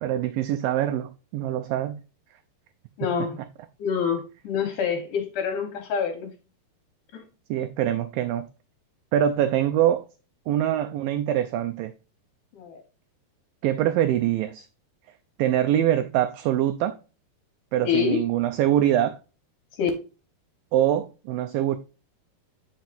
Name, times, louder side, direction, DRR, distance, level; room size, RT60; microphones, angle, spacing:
voice 1, 0.0-2.0 7.5-8.5 9.1-10.1 10.5-11.9 13.6-14.7 15.4-17.0 17.7-19.2 20.7-21.8, right 11 dB, 90° right, 1.9 m, -24 dB
voice 2, 3.0-3.4 3.8-6.3 7.1-7.2 12.5-12.8 17.8-18.2 19.8-19.9, left 7 dB, 65° left, 2.3 m, -26 dB
8.2 x 5.9 x 2.5 m
omnidirectional pair, 4.6 m